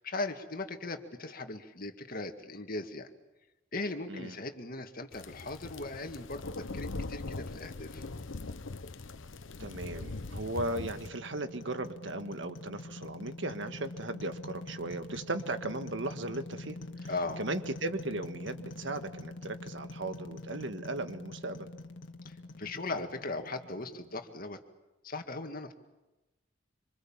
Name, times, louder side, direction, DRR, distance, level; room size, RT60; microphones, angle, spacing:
voice 1, 0.0-3.1 3.7-8.0 17.1-17.4 22.3-24.6 25.0-25.7, left 2 dB, 50° left, 6 dB, 2.1 m, -38 dB
sound 1, 5.1-11.1, left 3 dB, 90° left, 0.9 m, -41 dB
sound 2, 9.2-24.4, left 2 dB, 75° left, 1.7 m, -45 dB
voice 2, 9.6-16.8 17.0-21.7, right 2 dB, 70° right, 8 dB, 1.7 m, -37 dB
26.5 x 26.0 x 7.4 m, 1.1 s
head